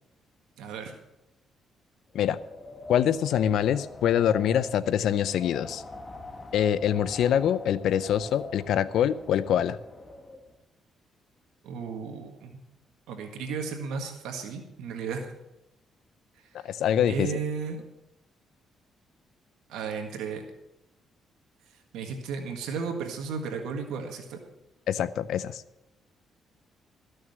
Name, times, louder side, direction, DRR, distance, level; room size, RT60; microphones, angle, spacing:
voice 1, 0.6-0.9 11.6-12.6 13.1-15.3 16.6-16.8 17.1-17.8 19.7-20.4 21.9-24.4, right 5 dB, 90° right, 4 dB, 1.7 m, -34 dB
Wind, 2.1-10.5, left 2 dB, 25° left, 1.8 m, -44 dB
voice 2, 2.9-5.8 6.5-9.8 16.6-17.3 24.9-25.6, left 9 dB, 75° left, 16 dB, 0.6 m, -25 dB
14.0 x 6.5 x 7.9 m, 0.93 s
cardioid pair, 90°, 0 cm